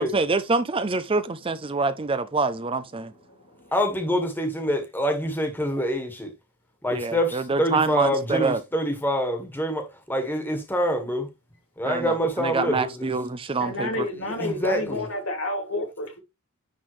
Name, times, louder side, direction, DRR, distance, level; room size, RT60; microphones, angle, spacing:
voice 1, 0.0-3.1 6.9-8.6 11.8-14.1, right 3 dB, 25° right, 0.5 m, -26 dB
voice 2, 3.1-3.7 13.6-16.2, left 1 dB, 70° left, 2.5 m, -31 dB
voice 3, 3.7-6.3 6.8-11.3 11.8-13.1 14.4-15.0, equal, 10° left, 1.6 m, -26 dB
10.0 x 3.9 x 3.2 m
head